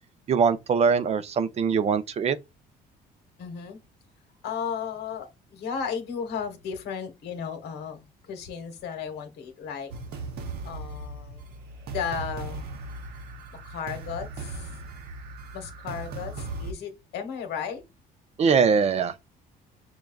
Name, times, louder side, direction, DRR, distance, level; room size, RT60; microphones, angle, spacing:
voice 1, 0.3-2.4 18.4-19.1, right 6 dB, 40° right, 0.4 m, -22 dB
voice 2, 3.4-3.8 4.4-9.9 10.6-11.4 11.9-12.6 13.6-14.7 15.5-17.8, left 7 dB, 75° left, 1.1 m, -34 dB
sound 1, 9.9-16.7, right 3 dB, 70° right, 0.8 m, -38 dB
6.2 x 2.3 x 2.3 m
cardioid pair, 110°, 17 cm